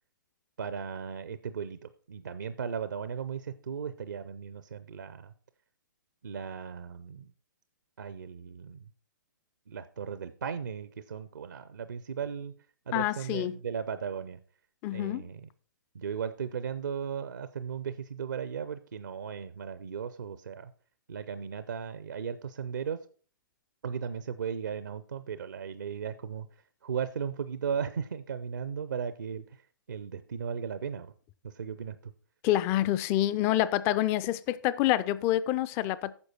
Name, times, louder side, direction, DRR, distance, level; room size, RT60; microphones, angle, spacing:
voice 1, 0.6-5.3 6.2-7.3 8.0-8.9 9.7-12.6 12.9-14.4 14.9-15.5 15.9-20.7 21.1-23.1 23.8-31.1 31.4-32.1, right 7 dB, 65° right, 0.6 m, -36 dB
voice 2, 12.9-13.5 14.8-15.3 32.4-36.1, left 14 dB, 25° left, 0.4 m, -27 dB
9.7 x 6.4 x 4.3 m
figure-of-eight pair, 120°, 11 cm